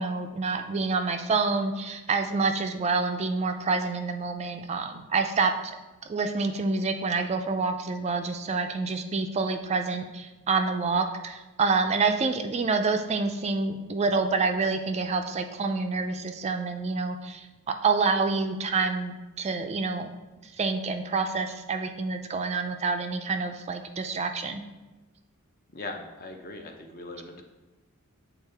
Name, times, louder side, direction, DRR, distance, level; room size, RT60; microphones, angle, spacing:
voice 1, 0.0-5.5 6.1-17.5 17.8-20.1 20.6-24.6, right 4 dB, 30° right, 6 dB, 0.3 m, -27 dB
voice 2, 25.7-27.4, left 2 dB, 40° left, 4 dB, 0.7 m, -40 dB
8.2 x 3.6 x 3.4 m, 1.1 s
head